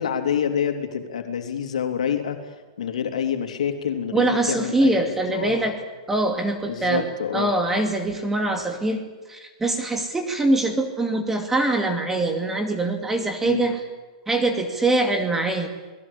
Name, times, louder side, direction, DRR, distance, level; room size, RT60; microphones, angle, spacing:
voice 1, 0.0-2.4 2.8-5.7 6.7-7.5 13.4-13.6, left 8 dB, 90° left, 5 dB, 3.1 m, -27 dB
voice 2, 4.1-5.8 6.1-7.1 7.3-13.8 14.3-15.7, right 2 dB, 10° right, 5 dB, 2.4 m, -23 dB
29.5 x 20.0 x 8.5 m, 1.2 s
supercardioid pair, 150°, 4 cm